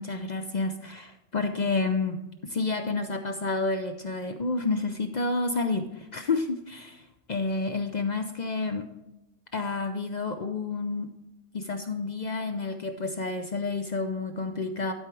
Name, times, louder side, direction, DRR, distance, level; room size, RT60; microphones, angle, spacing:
voice 1, 0.0-8.9 9.5-11.2 11.5-14.9, left 3 dB, 60° left, 7 dB, 0.4 m, -30 dB
12.0 x 4.8 x 4.5 m, 0.92 s
omnidirectional pair, 1.4 m